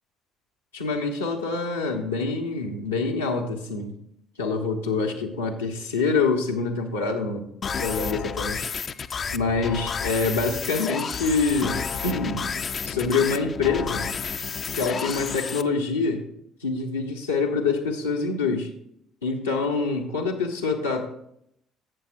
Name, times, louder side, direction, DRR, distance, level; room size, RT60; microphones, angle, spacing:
voice 1, 0.7-4.0 4.4-7.5 7.8-8.7 9.3-12.5 12.9-14.1 14.7-16.2 16.6-18.7 19.2-21.1, left 4 dB, 85° left, 0 dB, 1.1 m, -26 dB
sound 1, 7.6-15.6, left 6 dB, 40° left, 0.4 m, -31 dB
12.5 x 8.0 x 2.6 m, 0.73 s
figure-of-eight pair, 50°, 0 cm